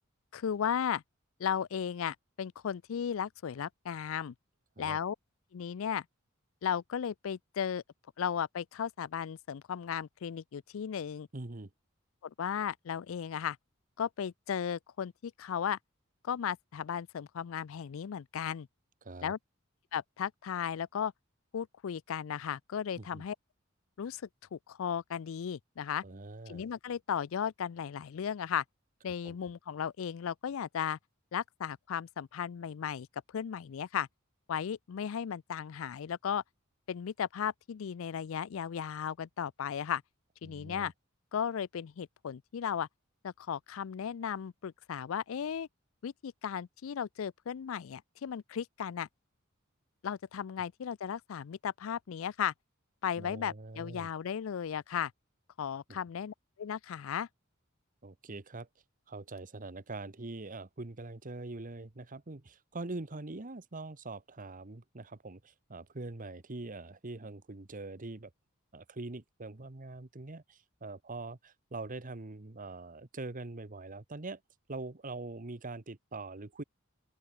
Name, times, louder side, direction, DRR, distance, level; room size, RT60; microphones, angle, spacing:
voice 1, 0.3-1.0 1.4-4.3 4.8-5.2 5.5-6.0 6.6-7.8 8.2-11.3 12.2-13.6 14.0-15.8 16.2-18.7 19.2-19.4 19.9-21.1 21.5-23.4 24.0-24.2 24.5-26.0 26.5-28.6 29.0-31.0 31.3-33.1 33.3-34.1 34.5-36.4 36.9-40.0 40.4-40.9 41.3-42.9 43.2-45.7 46.0-49.1 50.0-52.5 53.0-55.1 55.6-57.3, left 8 dB, 70° left, 0.4 m, -35 dB
voice 2, 11.3-11.7 19.0-19.3 23.0-23.2 26.0-26.6 29.2-29.4 40.4-40.9 53.2-54.1 55.9-56.0 58.0-58.7 59.1-68.3 68.7-74.4 74.7-76.6, right 2 dB, 40° right, 1.2 m, -43 dB
open air
head